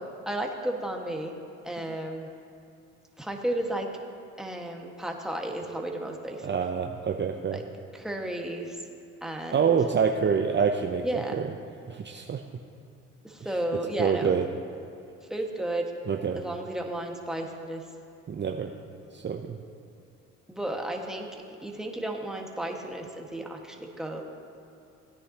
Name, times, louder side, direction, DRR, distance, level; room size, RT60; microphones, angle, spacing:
voice 1, 0.2-1.3 1.6-2.3 3.2-3.9 4.4-6.5 7.5-7.6 7.9-8.8 9.2-9.6 11.0-11.3 13.2-14.3 15.3-15.9 16.3-17.8 20.5-21.3 21.6-24.2, right 1 dB, ahead, 1 dB, 1.6 m, -33 dB
voice 2, 6.4-7.6 9.5-11.5 11.9-12.4 14.0-14.4 16.1-16.4 18.3-18.7 19.1-19.6, right 6 dB, 30° right, 4 dB, 0.7 m, -26 dB
17.0 x 9.6 x 2.9 m, 2.7 s
supercardioid pair, 60°, 34 cm